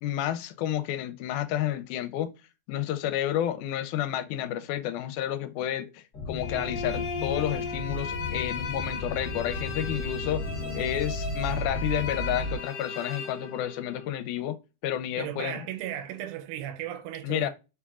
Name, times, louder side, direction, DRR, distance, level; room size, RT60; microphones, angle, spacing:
voice 1, 0.0-2.3 2.7-10.4 10.8-14.6 14.8-15.6 17.2-17.5, left 11 dB, 80° left, 1.9 m, -30 dB
sound 1, 6.1-12.6, left 2 dB, 40° left, 1.7 m, -34 dB
sound 2, 6.4-14.1, left 4 dB, 65° left, 0.9 m, -36 dB
voice 2, 15.2-17.5, right 11 dB, 80° right, 2.1 m, -36 dB
5.4 x 3.4 x 2.3 m
omnidirectional pair, 3.7 m